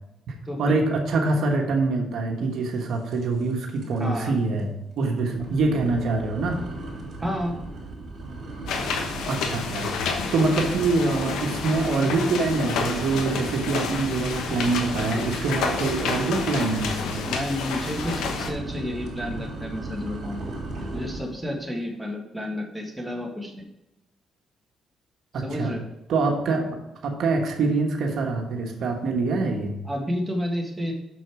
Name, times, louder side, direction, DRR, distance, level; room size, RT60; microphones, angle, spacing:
voice 1, 0.3-6.6 9.3-10.0 10.3-17.3 25.3-25.7 26.1-26.8 27.0-29.7, right 3 dB, 70° right, 2 dB, 1.2 m, -25 dB
sound 1, 3.1-3.5 3.8-4.2 4.6-4.7 5.3-21.4, right 2 dB, 50° right, 3.2 m, -36 dB
voice 2, 4.0-4.3 7.2-7.6 17.2-20.4 20.9-23.7 25.4-25.8 29.8-30.9, equal, 5° right, 0 dB, 1.6 m, -30 dB
sound 2, 8.7-18.5, left 5 dB, 90° left, 1.1 m, -30 dB
6.4 x 6.3 x 4.8 m, 0.90 s
cardioid pair, 95°, 0 cm